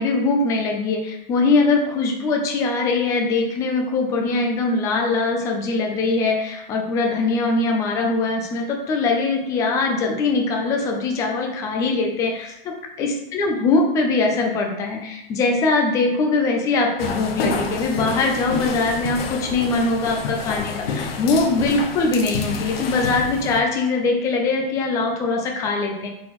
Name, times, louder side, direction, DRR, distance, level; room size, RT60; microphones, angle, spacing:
voice 1, 0.0-26.1, left 3 dB, 10° left, 2 dB, 0.3 m, -22 dB
sound 1, 17.0-23.6, left 4 dB, 85° left, 0.7 m, -28 dB
4.0 x 3.8 x 2.9 m, 0.85 s
supercardioid pair, 150°, 29 cm